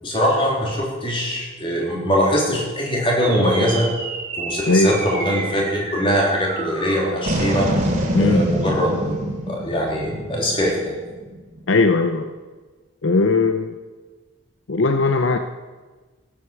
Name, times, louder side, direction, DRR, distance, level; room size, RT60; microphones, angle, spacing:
voice 1, 0.0-3.9 4.4-7.7 8.1-9.0 9.5-10.9, equal, 25° left, -2 dB, 3.4 m, -22 dB
sound 1, 3.2-11.8, right 1 dB, 35° right, 2.8 m, -27 dB
voice 2, 8.1-8.5 11.7-12.3 13.0-13.7 14.7-15.4, left 3 dB, 65° left, 7 dB, 0.7 m, -18 dB
15.5 x 8.5 x 7.1 m, 1.3 s
head